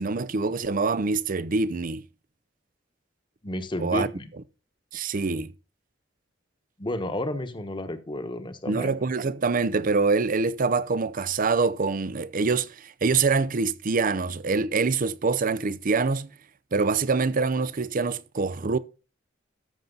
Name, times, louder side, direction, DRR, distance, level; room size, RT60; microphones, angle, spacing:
voice 1, 0.0-2.0 3.8-4.1 4.9-5.5 8.7-16.3 16.7-18.8, right 4 dB, 45° right, 0.6 m, -25 dB
voice 2, 3.4-4.3 6.8-8.9, left 1 dB, 25° left, 1.2 m, -31 dB
13.5 x 6.8 x 3.9 m
head